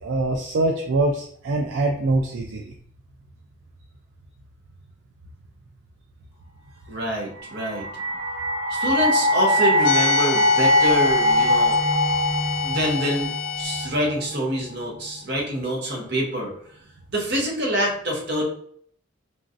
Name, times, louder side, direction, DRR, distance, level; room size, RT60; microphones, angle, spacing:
voice 1, 0.0-2.6, right 2 dB, 75° right, 1 dB, 0.3 m, -23 dB
voice 2, 6.9-7.9 8.7-11.8 12.6-16.5 17.1-18.4, equal, 55° right, -1 dB, 0.9 m, -26 dB
sound 1, 7.4-14.5, left 1 dB, 15° right, 0.8 m, -22 dB
sound 2, 9.8-13.9, left 8 dB, 90° left, 0.4 m, -29 dB
3.0 x 2.6 x 2.5 m, 0.63 s
head